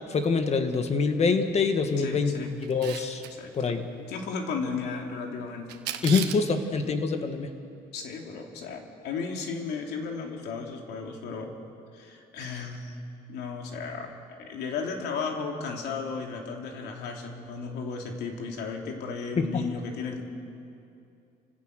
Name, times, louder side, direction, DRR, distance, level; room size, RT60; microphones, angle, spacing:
voice 1, 0.1-3.2 3.5-3.9 6.0-7.5 19.4-19.5, left 4 dB, 40° left, 7 dB, 1.9 m, -25 dB
voice 2, 2.0-2.5 3.3-3.8 4.1-5.7 7.9-11.6 11.9-13.0 13.3-20.2, left 5 dB, 80° left, 2 dB, 3.0 m, -35 dB
Camera, 2.6-3.3 5.7-6.5, right 11 dB, 85° right, 1.4 m, -34 dB
30.0 x 17.0 x 6.7 m, 2.6 s
cardioid pair, 110°, 17 cm